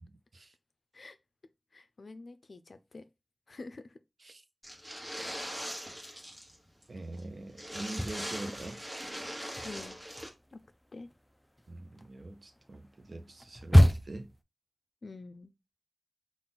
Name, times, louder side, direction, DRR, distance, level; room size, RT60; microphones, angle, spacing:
voice 1, 0.0-0.5 4.2-4.4 6.9-8.8 11.7-14.3, right 2 dB, 70° right, 0.6 m, -44 dB
voice 2, 1.7-3.0 3.5-4.0 9.6-10.0 10.5-10.6 10.9-11.1 15.0-15.5, left 3 dB, 80° left, 0.4 m, -47 dB
sound 1, 4.6-6.6 6.8-6.9 7.2-7.3 7.5-10.3, equal, 15° right, 1.3 m, -41 dB
sound 2, 7.8-9.0 9.3-14.4, equal, 10° left, 0.4 m, -27 dB
3.9 x 2.4 x 3.8 m
wide cardioid pair, 60°, 0 cm